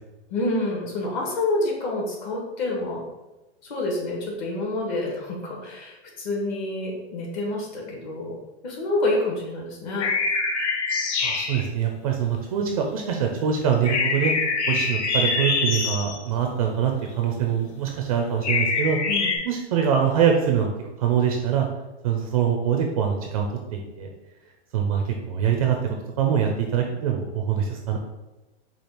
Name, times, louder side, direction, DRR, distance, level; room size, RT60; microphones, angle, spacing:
voice 1, 0.3-3.0 3.6-8.4 8.6-10.1 19.1-19.3, left 2 dB, 40° left, -2 dB, 1.4 m, -28 dB
sound 1, 10.0-11.7 13.8-16.2 18.4-19.4, left 4 dB, 75° left, 0.9 m, -24 dB
voice 2, 11.2-14.3 14.7-19.0 19.4-20.7 21.0-21.7 22.0-23.5 23.7-24.1 24.7-28.0, right 8 dB, 35° right, 2 dB, 0.4 m, -24 dB
5.0 x 2.4 x 4.4 m, 1.0 s
hypercardioid pair, 155°, 35 cm